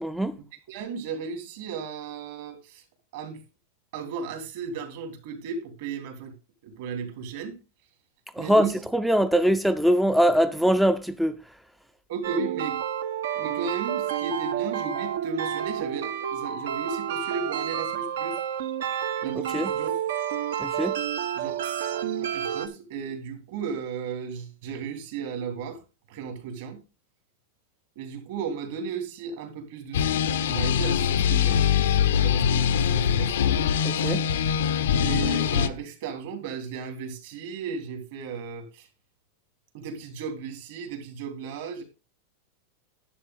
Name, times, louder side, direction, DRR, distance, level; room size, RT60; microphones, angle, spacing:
voice 1, 0.0-0.3 8.4-11.3 19.5-19.7 20.6-21.0 33.8-34.2, equal, ahead, 0.4 m, -22 dB
voice 2, 0.5-2.8 3.1-3.4 3.9-6.3 6.6-7.6 8.4-8.8 12.1-12.8 13.3-18.4 19.2-20.0 21.3-25.8 26.1-26.8 27.9-31.6 32.1-33.4 35.0-38.9 39.7-41.8, right 5 dB, 65° right, 3.2 m, -35 dB
sound 1, 12.2-22.7, right 9 dB, 80° right, 1.2 m, -30 dB
sound 2, 29.9-35.7, left 8 dB, 90° left, 0.8 m, -23 dB
11.0 x 8.9 x 3.7 m
supercardioid pair, 155°, 0 cm